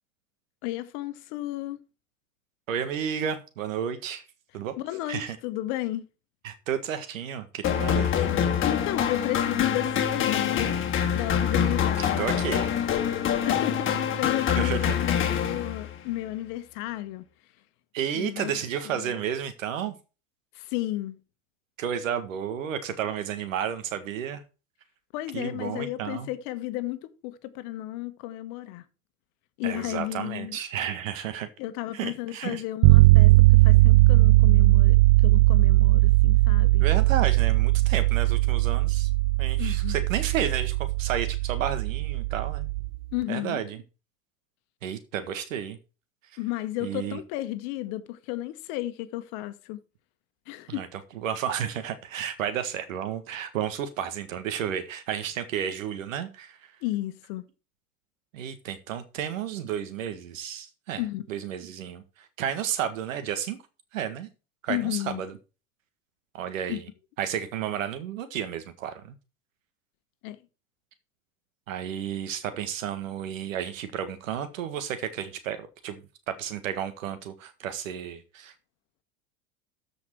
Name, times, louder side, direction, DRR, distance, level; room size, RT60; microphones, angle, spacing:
voice 1, 0.6-1.8 4.8-6.0 8.6-10.8 11.1-12.4 13.4-17.2 18.1-18.5 18.8-19.1 20.5-21.2 25.1-28.8 29.6-30.6 31.6-35.0 35.2-36.8 39.6-40.0 43.1-43.6 46.4-49.8 50.5-50.9 56.8-57.4 61.0-61.3 64.7-65.2 66.7-66.8 70.2-70.4, left 15 dB, 50° left, 1.3 m, -33 dB
voice 2, 2.7-4.2 4.5-4.7 5.1-5.4 6.4-8.1 11.5-11.7 12.0-12.7 14.6-14.9 17.9-20.0 21.8-24.4 25.3-26.3 29.6-31.5 31.9-32.6 36.8-39.1 39.4-42.7 43.3-43.8 44.8-45.8 46.8-47.2 50.7-50.9 51.2-56.7 58.3-63.6 63.9-64.3 64.6-65.4 66.3-66.9 67.2-69.2 71.7-78.5, right 9 dB, 75° right, 1.8 m, -32 dB
sound 1, 7.6-16.0, left 8 dB, 30° left, 2.1 m, -25 dB
sound 2, 32.8-43.0, right 21 dB, 45° right, 0.6 m, -19 dB
13.5 x 5.2 x 4.7 m
hypercardioid pair, 105°, 40 cm